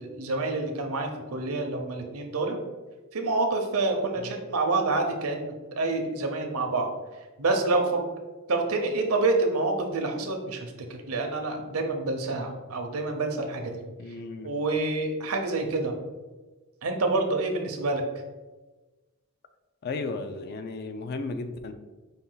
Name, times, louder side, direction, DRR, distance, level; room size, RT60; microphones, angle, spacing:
voice 1, 0.0-2.6 3.1-6.9 7.4-8.0 8.5-13.8 14.4-16.0 16.8-18.0, right 3 dB, 80° right, 4 dB, 0.7 m, -27 dB
voice 2, 14.0-14.5 19.8-21.7, left 3 dB, 45° left, 8 dB, 0.3 m, -34 dB
5.3 x 2.3 x 3.8 m, 1.2 s
head